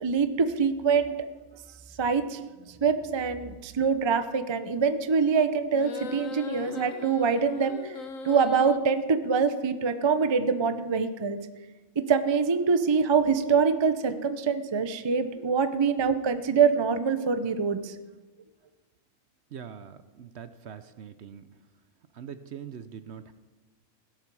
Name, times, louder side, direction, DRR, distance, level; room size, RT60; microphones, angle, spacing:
voice 1, 0.0-1.1 2.0-2.4 2.7-7.9 8.2-11.4 12.0-17.9, right 5 dB, 35° right, 10 dB, 0.4 m, -25 dB
sound 1, 5.7-8.8, left 5 dB, 65° left, 1.3 m, -39 dB
voice 2, 19.5-21.4 22.1-23.3, right 8 dB, 55° right, 11 dB, 0.8 m, -43 dB
17.0 x 12.5 x 4.8 m, 1.2 s
omnidirectional pair, 1.6 m